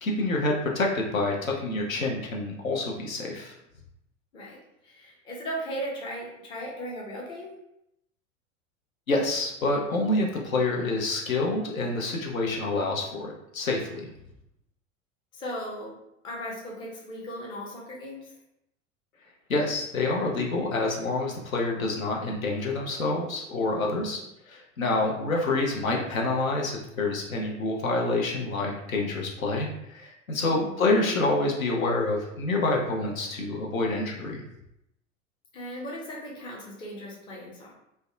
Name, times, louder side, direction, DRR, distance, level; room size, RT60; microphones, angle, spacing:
voice 1, 0.0-3.5 9.1-14.1 19.5-34.4, left 2 dB, 85° left, 0 dB, 0.6 m, -27 dB
voice 2, 4.8-7.5 15.3-16.0 16.2-18.3 30.5-30.8 35.5-37.7, equal, 15° left, -3 dB, 0.4 m, -37 dB
2.5 x 2.1 x 2.4 m, 0.81 s
figure-of-eight pair, 80°, 40 cm